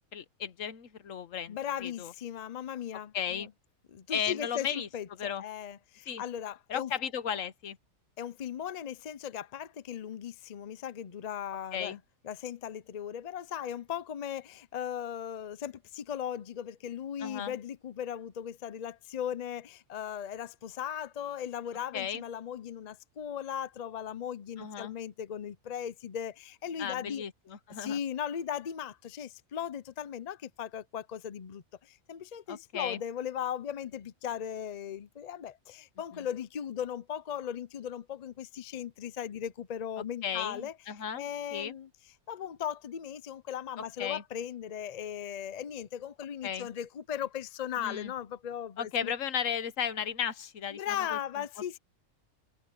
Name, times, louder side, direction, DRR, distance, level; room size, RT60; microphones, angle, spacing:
voice 1, 0.0-2.1 3.1-3.5 4.1-4.9 5.2-5.4 6.1-6.2 6.7-7.8 11.7-12.0 17.2-17.6 21.9-22.2 24.6-24.9 26.8-28.0 32.5-33.0 36.1-36.3 40.2-41.2 41.5-41.7 44.0-44.2 46.4-46.7 47.8-48.1 48.8-51.2, left 8 dB, 65° left, 1.3 m, -35 dB
voice 2, 1.5-3.5 3.9-6.9 8.2-27.2 27.8-40.7 41.2-41.9 42.3-49.1 50.7-51.8, left 9 dB, 50° left, 0.4 m, -38 dB
omnidirectional pair, 1.5 m